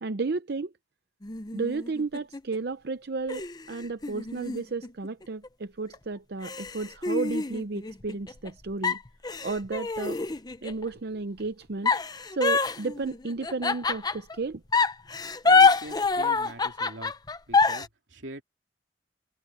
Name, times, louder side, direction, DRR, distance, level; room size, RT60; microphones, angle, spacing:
voice 1, 0.0-0.7 1.5-9.0 9.4-10.2 10.6-11.9 12.3-14.6, right 3 dB, 60° right, 0.6 m, -33 dB
sound 1, 1.2-2.6 3.3-5.5 5.9-6.0 6.4-8.5 8.8-10.8 11.9-14.4 14.7-17.9, left 4 dB, 20° left, 0.7 m, -26 dB
voice 2, 15.4-17.1 17.5-18.4, right 1 dB, 90° right, 3.0 m, -42 dB
head